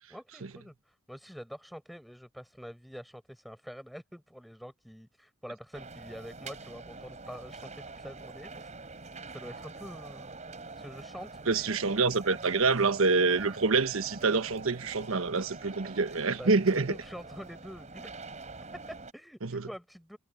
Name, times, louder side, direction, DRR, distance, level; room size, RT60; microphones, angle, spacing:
voice 1, 0.1-8.7 9.3-10.3 10.7-11.8 16.4-18.1 18.7-20.2, equal, ahead, 7.7 m, -46 dB
sound 1, 5.7-19.1, right 3 dB, 35° right, 4.6 m, -45 dB
voice 2, 11.5-17.0 19.4-19.6, right 4 dB, 85° right, 1.2 m, -26 dB
head